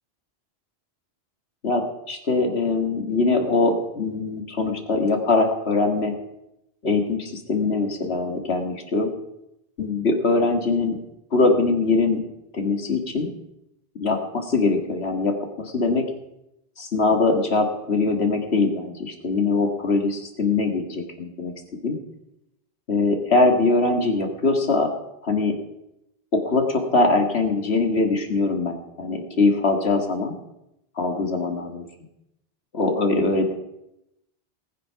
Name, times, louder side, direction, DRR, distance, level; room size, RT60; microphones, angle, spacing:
voice 1, 1.6-6.1 6.8-9.1 9.8-10.9 11.3-12.2 12.5-13.3 14.0-16.1 16.8-21.5 21.8-22.0 22.9-24.9 25.2-25.5 26.3-30.3 31.0-31.8 32.7-33.5, left 3 dB, 75° left, 4 dB, 2.1 m, -22 dB
19.0 x 7.7 x 5.8 m, 0.86 s
omnidirectional pair, 1.1 m